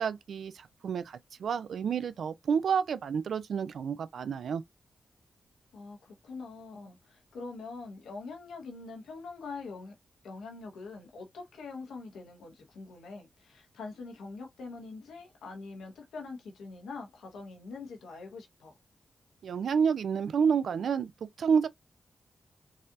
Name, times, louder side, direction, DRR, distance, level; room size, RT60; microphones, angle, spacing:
voice 1, 0.0-4.6 19.4-21.1 21.4-21.7, right 6 dB, 80° right, 0.4 m, -29 dB
voice 2, 5.7-9.9 10.2-18.8, left 4 dB, 90° left, 1.0 m, -44 dB
4.0 x 2.6 x 2.6 m
supercardioid pair, 45°, 0 cm